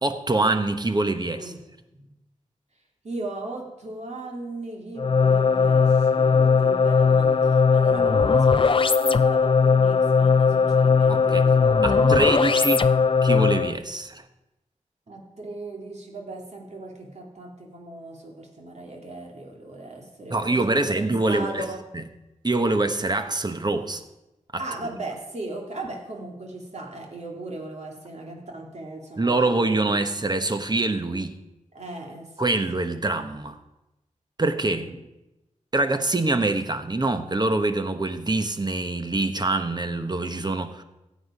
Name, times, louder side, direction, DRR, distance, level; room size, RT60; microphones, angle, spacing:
voice 1, 0.0-1.5 11.1-11.4 11.8-12.8 13.2-14.2 20.3-21.6 21.9-22.0 22.4-24.0 24.5-24.6 29.2-31.3 32.4-33.6 34.4-34.9 35.7-40.8, right 2 dB, 35° right, 8 dB, 1.1 m, -24 dB
voice 2, 3.0-12.3 15.1-21.8 24.6-29.4 30.0-30.1 31.7-32.3 34.7-34.9, right 2 dB, 60° right, 0 dB, 2.8 m, -37 dB
sound 1, 5.0-13.8, left 5 dB, 40° left, 0.5 m, -19 dB
15.5 x 8.4 x 5.1 m, 0.97 s
wide cardioid pair, 65°, 13 cm